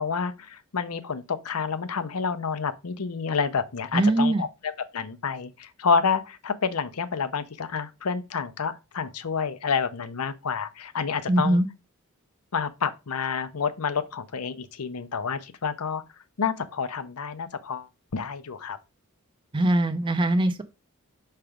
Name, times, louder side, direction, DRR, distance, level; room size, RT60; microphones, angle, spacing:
voice 1, 0.0-11.6 12.5-16.0 16.4-18.8, left 5 dB, 80° left, 0.7 m, -29 dB
voice 2, 3.9-4.4 11.3-11.7 19.5-20.6, right 1 dB, 20° right, 0.5 m, -22 dB
5.8 x 3.3 x 5.0 m
head